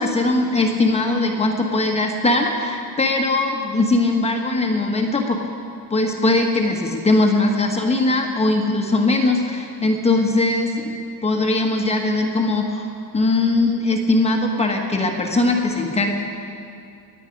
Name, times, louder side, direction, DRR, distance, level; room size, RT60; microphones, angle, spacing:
voice 1, 0.0-5.4 5.9-10.9 11.2-12.9 13.1-16.1, left 2 dB, 15° left, 2 dB, 1.2 m, -20 dB
24.5 x 9.1 x 5.2 m, 2.6 s
cardioid pair, 145°, 41 cm